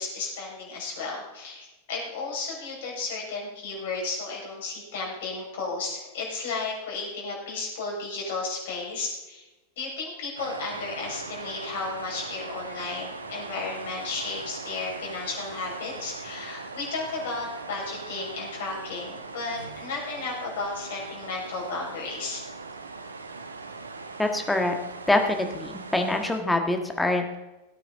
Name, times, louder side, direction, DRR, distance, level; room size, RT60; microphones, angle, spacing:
voice 1, 0.0-9.4 9.8-22.4, left 3 dB, 55° left, -2 dB, 5.1 m, -33 dB
sound 1, 10.4-26.4, right 4 dB, 75° right, 1.0 m, -40 dB
voice 2, 24.2-24.7 25.1-27.4, left 2 dB, 5° left, 4 dB, 1.6 m, -25 dB
17.5 x 9.1 x 3.7 m, 1.0 s
figure-of-eight pair, 90°, 0 cm